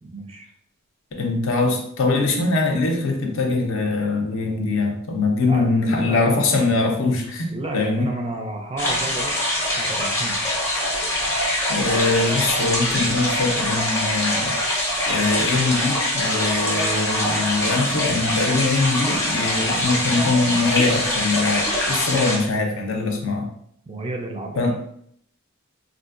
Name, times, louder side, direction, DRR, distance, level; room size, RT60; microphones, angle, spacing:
voice 1, 0.0-0.5 5.5-6.3 7.5-10.4 23.9-24.7, right 2 dB, 25° right, 2 dB, 0.4 m, -32 dB
voice 2, 1.1-8.1 11.7-23.5 24.6-24.7, left 3 dB, 60° left, 2 dB, 0.6 m, -22 dB
sound 1, 8.8-22.4, left 1 dB, 10° left, 0.7 m, -23 dB
3.7 x 2.4 x 2.4 m, 0.68 s
head